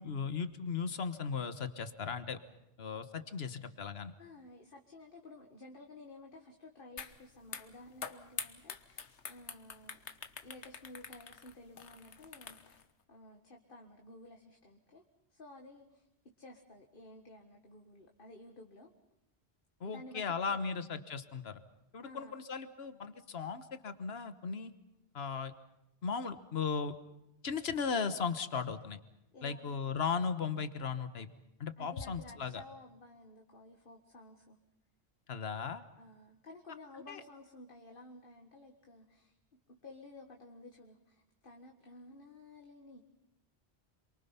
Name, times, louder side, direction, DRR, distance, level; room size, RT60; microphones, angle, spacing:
voice 1, 0.0-2.4 2.8-4.1 19.8-21.6 21.9-24.7 25.1-25.5 26.0-26.9 27.4-29.0 29.4-31.3 31.6-32.6 35.3-35.8 37.1-37.2, left 5 dB, 65° left, 11 dB, 1.5 m, -37 dB
voice 2, 4.2-10.0 10.4-12.8 13.1-15.0 15.3-16.1 16.4-18.9 19.8-20.6 22.0-22.4 29.3-29.8 31.8-34.6 36.0-39.3 39.7-43.0, left 2 dB, 50° left, 2 dB, 1.8 m, -53 dB
sound 1, 7.0-7.1 7.4-12.8, left 6 dB, 90° left, 1.5 m, -45 dB
27.5 x 23.5 x 5.8 m, 0.88 s
omnidirectional pair, 1.1 m